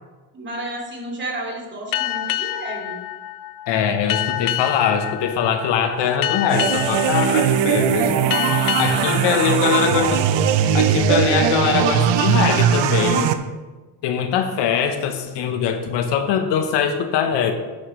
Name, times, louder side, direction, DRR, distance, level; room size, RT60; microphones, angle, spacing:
voice 1, 0.3-3.0 8.9-9.5, right 2 dB, 25° right, -1 dB, 2.7 m, -31 dB
sound 1, 1.9-11.1, left 14 dB, 50° left, 0.4 m, -28 dB
voice 2, 3.7-8.1 8.8-10.3 10.7-13.3 14.0-17.5, left 7 dB, 70° left, 6 dB, 1.1 m, -22 dB
sound 2, 6.5-13.3, right 9 dB, 70° right, 0.8 m, -19 dB
9.9 x 8.9 x 3.2 m, 1.2 s
cardioid pair, 115°, 44 cm